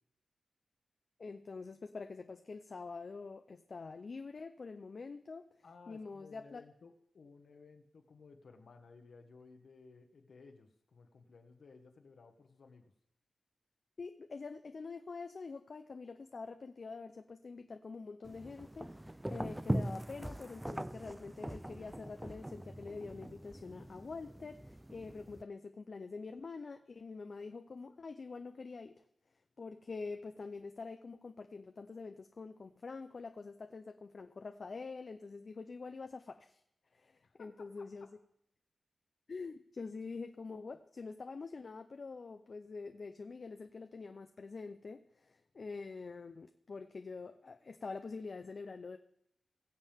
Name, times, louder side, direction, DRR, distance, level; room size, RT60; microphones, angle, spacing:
voice 1, 1.2-5.5 5.9-6.6 14.0-29.0 29.6-36.6 36.9-38.1 39.3-49.0, left 4 dB, 50° left, 7 dB, 0.6 m, -46 dB
voice 2, 5.6-12.9 37.2-37.9, left 4 dB, 75° left, 5 dB, 1.5 m, -58 dB
sound 1, 18.2-25.4, right 1 dB, 10° right, 0.4 m, -41 dB
21.5 x 7.5 x 3.6 m, 0.75 s
wide cardioid pair, 135°, 0 cm